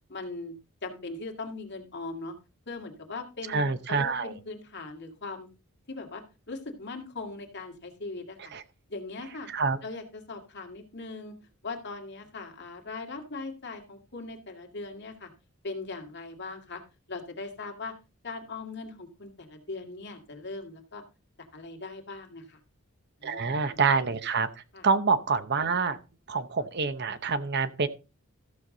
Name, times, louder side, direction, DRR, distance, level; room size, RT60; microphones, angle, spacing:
voice 1, 0.1-0.5 0.8-2.3 2.7-5.5 5.9-8.5 8.9-9.5 9.8-11.3 11.6-15.3 15.6-16.8 17.1-17.9 18.2-21.0 21.5-22.6 23.2-23.8 24.7-24.9, left 3 dB, 50° left, 3 dB, 2.3 m, -40 dB
voice 2, 3.5-4.3 8.5-8.6 9.5-9.8 23.2-24.5 24.8-26.0 26.3-27.9, right 4 dB, 50° right, 12 dB, 0.8 m, -26 dB
14.0 x 7.2 x 3.9 m, 0.30 s
head